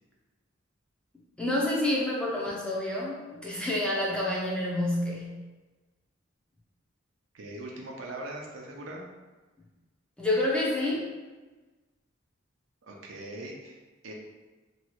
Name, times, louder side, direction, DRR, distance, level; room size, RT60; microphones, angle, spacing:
voice 1, 1.4-5.4 10.2-11.1, left 1 dB, 5° left, -5 dB, 0.5 m, -28 dB
voice 2, 7.3-9.0 12.8-14.1, right 1 dB, 75° right, -1 dB, 0.6 m, -41 dB
2.9 x 2.3 x 3.0 m, 1.2 s
head